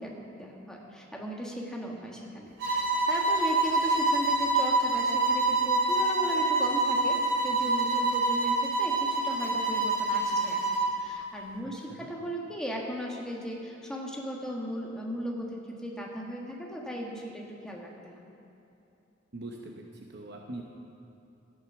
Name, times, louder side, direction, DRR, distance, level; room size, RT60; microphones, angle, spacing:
voice 1, 0.0-10.6 11.0-18.2, equal, 5° left, -2 dB, 1.5 m, -37 dB
sound 1, 2.6-11.0, right 2 dB, 85° right, 2.4 m, -26 dB
voice 2, 11.6-12.0 19.3-19.8 20.1-20.6, right 2 dB, 60° right, 0 dB, 0.9 m, -42 dB
13.0 x 8.9 x 6.0 m, 2.9 s
head